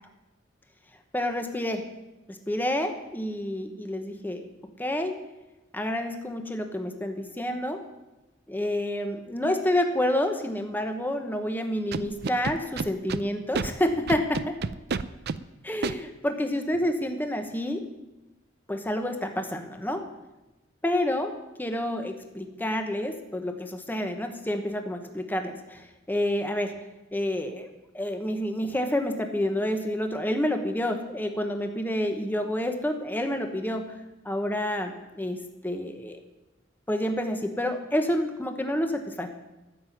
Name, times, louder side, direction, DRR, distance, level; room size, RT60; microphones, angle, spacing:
voice 1, 1.1-1.9 2.3-4.5 4.8-5.2 5.7-7.8 8.5-14.6 15.6-17.8 18.7-20.0 20.8-21.3 21.6-26.8 27.1-27.7 27.9-34.0 34.2-36.2 36.9-39.3, left 1 dB, 10° left, 5 dB, 1.1 m, -29 dB
Scratching (performance technique), 11.9-13.2 13.5-13.7 14.1-15.4 15.8-15.9, right 4 dB, 55° right, 0.5 m, -29 dB
10.5 x 7.6 x 9.6 m, 1.0 s
head